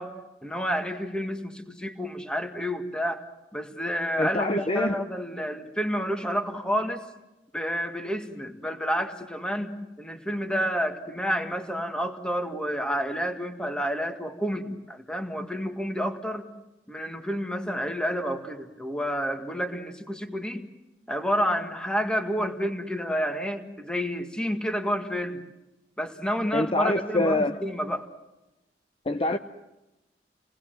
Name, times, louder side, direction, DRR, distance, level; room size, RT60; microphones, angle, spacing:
voice 1, 0.0-3.2 3.5-7.0 7.5-16.4 16.9-20.6 21.1-25.4 26.0-28.1, equal, 5° left, 6 dB, 1.9 m, -29 dB
voice 2, 4.2-5.0 26.5-27.6 29.1-29.4, left 2 dB, 30° left, 6 dB, 0.8 m, -25 dB
29.0 x 19.5 x 7.7 m, 0.99 s
head